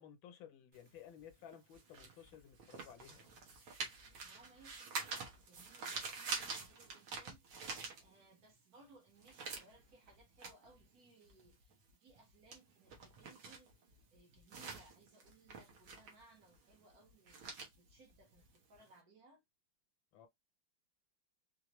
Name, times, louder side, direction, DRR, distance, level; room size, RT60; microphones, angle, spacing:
voice 1, 0.0-3.5 20.1-20.3, left 9 dB, 75° left, 1.5 m, -56 dB
sound 1, 0.7-8.5 8.8-18.9, right 4 dB, 85° right, 1.9 m, -47 dB
voice 2, 4.2-7.4 8.0-11.7 12.0-13.7 14.1-19.4, right 3 dB, 55° right, 1.4 m, -65 dB
4.7 x 2.5 x 3.0 m
omnidirectional pair, 2.2 m